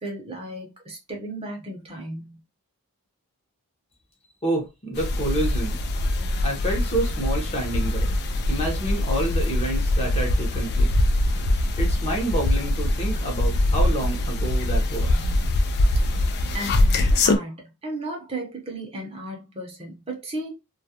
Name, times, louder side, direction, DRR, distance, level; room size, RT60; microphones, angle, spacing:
voice 1, 0.0-2.4 15.1-15.4 16.5-20.5, right 1 dB, 25° right, 0.7 m, -35 dB
voice 2, 4.4-5.8 6.4-8.1 8.5-10.9 11.8-15.3, right 1 dB, 25° left, 0.8 m, -28 dB
sound 1, 5.0-17.4, left 1 dB, 50° left, 0.4 m, -23 dB
2.3 x 2.2 x 2.7 m
head